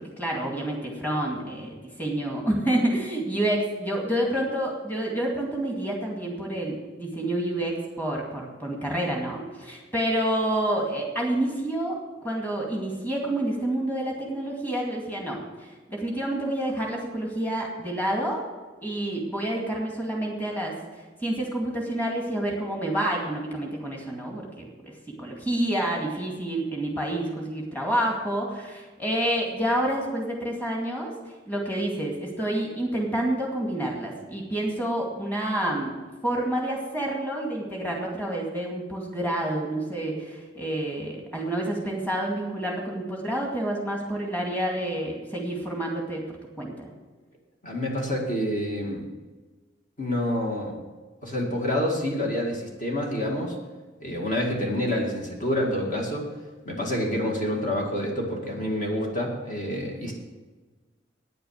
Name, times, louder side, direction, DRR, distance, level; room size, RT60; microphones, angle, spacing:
voice 1, 0.0-12.0 12.2-18.4 18.8-20.7 21.2-24.9 25.2-31.1 31.5-36.0 36.2-46.2 46.6-46.9, right 1 dB, 10° left, -1 dB, 2.2 m, -28 dB
voice 2, 47.6-49.1 50.0-50.8 51.2-53.6 54.0-56.3 56.7-60.1, left 1 dB, 45° left, -1 dB, 2.1 m, -27 dB
9.7 x 8.9 x 6.6 m, 1.3 s
head